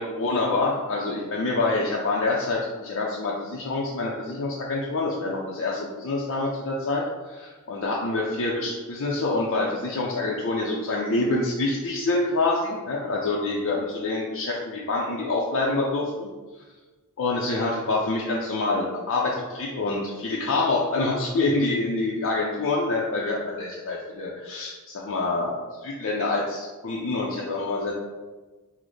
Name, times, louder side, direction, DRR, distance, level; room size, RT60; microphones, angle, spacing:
voice 1, 0.0-16.3 17.2-28.0, left 2 dB, 65° left, -4 dB, 0.5 m, -26 dB
6.1 x 2.1 x 3.2 m, 1.3 s
head